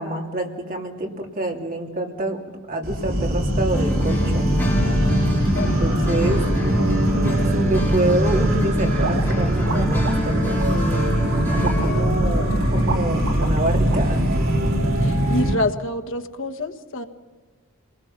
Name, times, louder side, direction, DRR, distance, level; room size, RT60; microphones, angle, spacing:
voice 1, 0.0-2.4 2.7-4.5 5.5-6.4 7.1-11.1 11.5-14.2 14.8-15.1, right 1 dB, 45° right, 0 dB, 3.1 m, -27 dB
sound 1, 2.8-15.5, right 1 dB, 85° right, 2.8 m, -21 dB
sound 2, 3.7-11.9, equal, 10° left, 6.6 m, -27 dB
voice 2, 5.3-6.3 11.7-12.7 15.0-17.0, left 2 dB, 65° left, 5 dB, 1.4 m, -29 dB
sound 3, 8.9-14.0, right 3 dB, 65° right, 1.5 m, -33 dB
28.5 x 20.0 x 5.9 m, 1.4 s
head